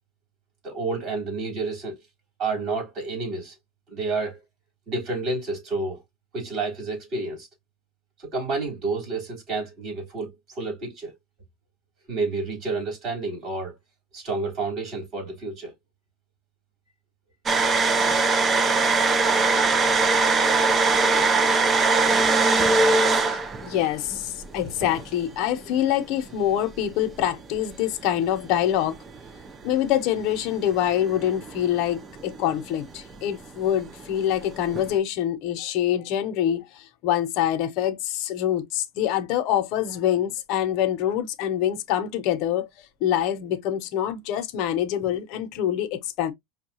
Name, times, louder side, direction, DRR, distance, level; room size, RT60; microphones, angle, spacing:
voice 1, 0.6-1.9 2.4-3.5 3.9-4.4 4.9-6.0 6.3-7.5 8.2-11.1 12.1-13.7 14.1-15.7, right 3 dB, 40° right, 3.4 m, -30 dB
sound 1, 17.5-25.1 25.6-25.7 27.2-27.7 28.8-32.9 33.2-33.5 33.7-34.9, right 3 dB, 20° right, 0.5 m, -22 dB
voice 2, 23.3-29.0 29.6-42.7 43.0-46.3, left 11 dB, 55° left, 0.7 m, -25 dB
5.4 x 2.3 x 2.8 m
supercardioid pair, 140°, 0 cm